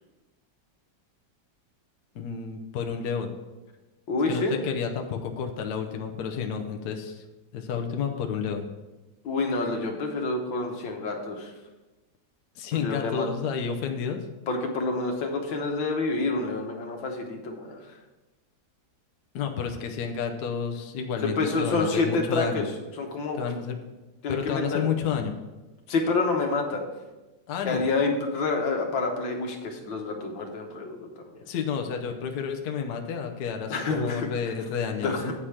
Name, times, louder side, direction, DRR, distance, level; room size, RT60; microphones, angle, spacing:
voice 1, 2.1-3.3 4.3-7.2 7.5-8.7 12.6-14.2 19.3-22.7 23.4-23.8 24.3-25.4 27.5-27.9 31.5-35.2, left 7 dB, 65° left, 4 dB, 1.2 m, -30 dB
voice 2, 4.1-4.6 9.2-11.5 12.7-13.3 14.5-17.8 21.2-22.6 23.0-23.4 24.2-24.9 25.9-26.9 27.6-31.1 33.7-34.3 35.0-35.3, left 3 dB, 80° left, 2 dB, 1.9 m, -28 dB
8.7 x 4.9 x 5.8 m, 1.1 s
omnidirectional pair, 2.0 m